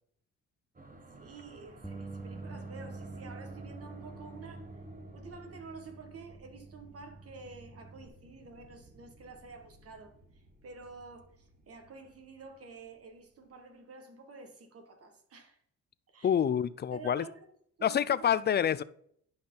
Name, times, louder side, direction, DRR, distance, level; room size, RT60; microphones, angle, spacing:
sound 1, 0.7-13.3, right 1 dB, 30° right, 1.5 m, -54 dB
voice 1, 1.2-4.7 5.1-15.6 16.1-16.4 16.9-17.5 17.8-18.3, right 4 dB, 50° right, 1.7 m, -49 dB
Bass guitar, 1.8-8.1, right 3 dB, ahead, 0.8 m, -47 dB
voice 2, 16.2-17.2 17.8-18.8, left 9 dB, 35° left, 0.4 m, -27 dB
10.5 x 5.6 x 4.0 m
cardioid pair, 90°, 30 cm